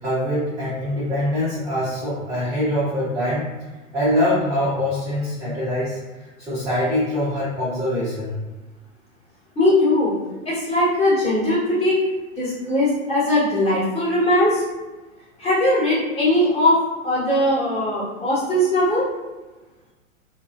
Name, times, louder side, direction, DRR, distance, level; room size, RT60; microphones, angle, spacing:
voice 1, 0.0-3.5 3.9-6.0 6.4-8.4, left 1 dB, 10° right, -12 dB, 0.4 m, -23 dB
voice 2, 9.5-10.1 10.4-12.0 12.4-14.6 15.4-19.1, left 1 dB, 15° left, -8 dB, 1.0 m, -20 dB
2.8 x 2.0 x 2.3 m, 1.2 s
figure-of-eight pair, 100°, 40 cm